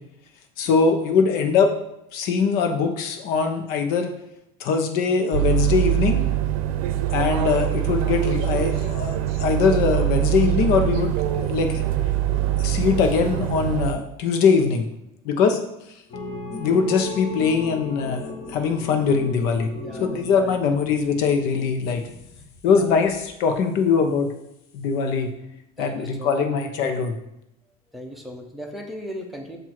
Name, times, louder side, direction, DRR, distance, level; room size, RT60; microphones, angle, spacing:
voice 1, 0.6-1.7 2.1-4.1 4.6-6.2 7.1-11.8 12.6-14.9 15.2-15.6 16.5-19.7 20.0-22.0 22.6-24.3 24.7-25.3 25.8-27.2, left 5 dB, 65° left, 5 dB, 1.0 m, -22 dB
sound 1, 5.3-13.9, right 13 dB, 85° right, 0.6 m, -23 dB
sound 2, 16.1-23.6, left 2 dB, 25° left, 1.1 m, -37 dB
voice 2, 19.7-20.6 22.7-23.0 25.8-26.5 26.8-26.9 27.9-29.6, equal, ahead, 0 dB, 0.8 m, -37 dB
7.4 x 2.7 x 5.9 m, 0.82 s
cardioid pair, 155°, 17 cm